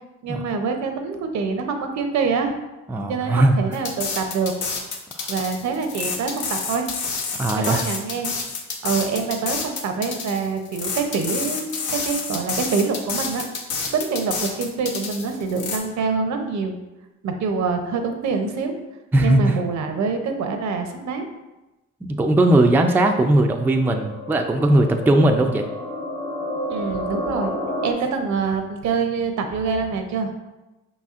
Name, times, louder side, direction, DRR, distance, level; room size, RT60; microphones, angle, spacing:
voice 1, 0.2-2.6 3.1-4.5 5.3-6.9 7.5-8.3 8.8-13.5 13.9-16.8 17.2-18.7 19.2-21.3 26.7-27.5 27.8-30.3, right 5 dB, 65° right, 6 dB, 0.7 m, -25 dB
voice 2, 2.9-3.6 5.2-5.3 7.3-7.8 19.1-19.6 22.0-25.7, right 1 dB, 5° right, 3 dB, 0.3 m, -18 dB
sound 1, 3.7-15.8, left 5 dB, 80° left, 0.8 m, -29 dB
sound 2, 23.3-27.9, equal, 25° left, 0.8 m, -31 dB
5.2 x 4.2 x 2.4 m, 1.0 s
cardioid pair, 90°, 30 cm